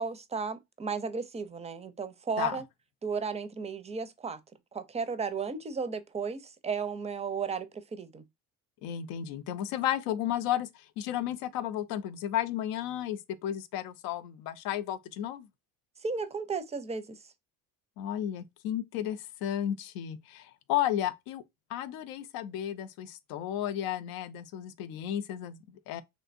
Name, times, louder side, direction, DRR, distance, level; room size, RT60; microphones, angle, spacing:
voice 1, 0.0-2.6 3.0-4.4 4.7-8.2 16.0-17.2, right 5 dB, 20° right, 0.4 m, -34 dB
voice 2, 8.8-10.7 11.0-15.5 18.0-21.4 21.7-26.0, left 11 dB, 90° left, 0.5 m, -33 dB
3.2 x 2.6 x 2.5 m
cardioid pair, 100°, 35 cm